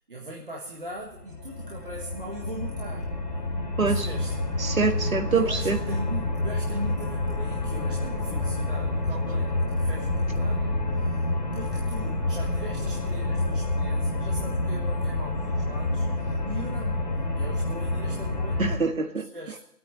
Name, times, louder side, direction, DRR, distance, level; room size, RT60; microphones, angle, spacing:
voice 1, 0.1-3.1 3.9-4.5 5.3-10.8 11.1-11.2 11.5-17.1 17.3-18.8 19.3-19.6, right 1 dB, 35° right, -2 dB, 1.6 m, -40 dB
sound 1, 1.0-18.8, left 2 dB, 25° left, 2.2 m, -28 dB
voice 2, 4.6-5.8 18.6-19.3, right 4 dB, 55° right, 6 dB, 1.8 m, -25 dB
20.0 x 8.8 x 6.6 m, 0.76 s
figure-of-eight pair, 170°, 48 cm